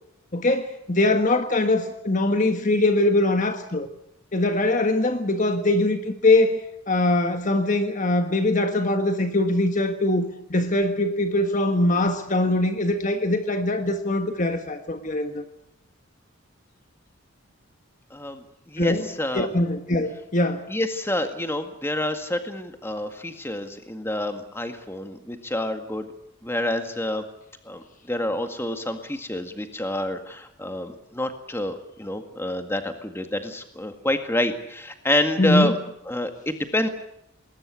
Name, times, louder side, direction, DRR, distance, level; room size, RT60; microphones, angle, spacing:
voice 1, 0.3-3.9 4.3-6.6 6.9-10.2 10.5-15.4 18.8-20.6 35.4-35.8, left 2 dB, 35° left, 7 dB, 1.4 m, -22 dB
voice 2, 18.1-19.5 20.7-26.1 26.4-27.2 27.7-35.7 36.1-36.9, left 1 dB, 10° left, 7 dB, 1.9 m, -28 dB
20.5 x 20.0 x 8.4 m, 0.77 s
head